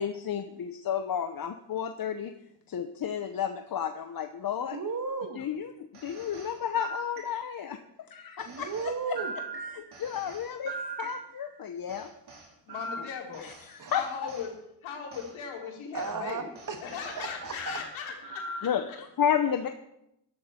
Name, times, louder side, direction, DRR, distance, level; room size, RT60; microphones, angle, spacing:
voice 1, 0.0-2.3 2.7-4.8 5.3-7.8 8.1-8.9 9.7-12.1 13.4-14.0 18.6-19.7, left 8 dB, 50° left, 7 dB, 0.9 m, -32 dB
voice 2, 4.7-5.5 8.5-9.3 13.8-13.9 15.9-16.8 17.2-17.8, right 5 dB, 40° right, 7 dB, 1.8 m, -34 dB
sound 1, 5.9-7.7 8.4-11.5 11.9-14.5 15.1-15.3 15.9-16.1 16.5-17.7 18.2-18.8, right 3 dB, 55° right, 4.0 m, -41 dB
voice 3, 12.7-13.5 13.9-14.5 14.8-16.5 16.8-19.0, left 6 dB, 85° left, 0 dB, 3.6 m, -38 dB
14.5 x 11.5 x 4.4 m, 0.83 s
cardioid pair, 85°, 46 cm